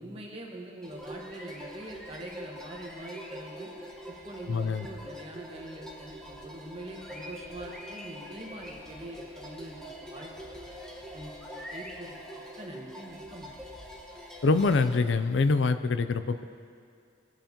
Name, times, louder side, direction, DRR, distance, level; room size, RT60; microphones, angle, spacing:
voice 1, 0.0-3.7 4.1-10.3 11.1-11.4 11.7-12.2 12.6-13.6, right 1 dB, 30° right, -1 dB, 1.4 m, -43 dB
sound 1, 0.8-15.0, equal, 5° left, 1.3 m, -44 dB
voice 2, 4.5-4.9 14.4-16.4, left 3 dB, 85° left, 12 dB, 0.5 m, -25 dB
19.5 x 8.9 x 2.9 m, 2.3 s
head